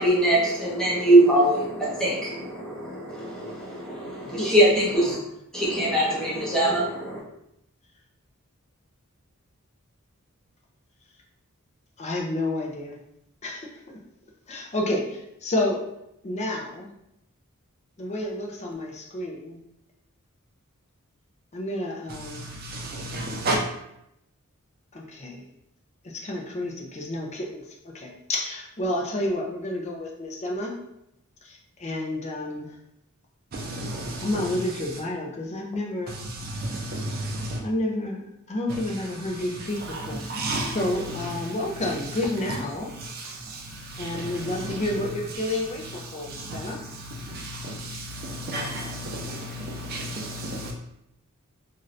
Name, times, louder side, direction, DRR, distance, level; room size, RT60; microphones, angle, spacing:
voice 1, 0.0-5.2 5.5-7.2, right 1 dB, 5° left, 0.8 m, -22 dB
voice 2, 4.2-4.5 12.0-13.0 13.4-14.0 14.5-15.8 16.2-16.9 18.0-19.6 21.5-22.5 24.9-25.4 26.0-27.6 27.9-30.7 31.4-32.7 34.2-36.2 37.6-38.2 38.5-40.2 40.7-42.9 44.0-46.8, left 1 dB, 30° left, 0.5 m, -30 dB
voice 3, 22.1-23.6 33.5-35.0 36.1-37.6 38.7-42.1 42.9-50.7, right 1 dB, 45° right, 0.4 m, -34 dB
2.6 x 2.5 x 3.2 m
head